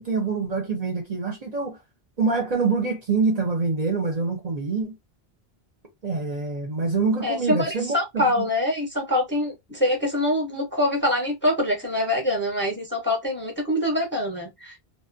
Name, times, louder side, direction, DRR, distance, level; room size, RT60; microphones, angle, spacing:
voice 1, 0.0-1.8 2.2-4.9 6.0-8.5, right 4 dB, 45° right, 0.7 m, -25 dB
voice 2, 7.2-14.8, left 1 dB, 15° left, 0.6 m, -24 dB
2.5 x 2.0 x 2.5 m
omnidirectional pair, 1.0 m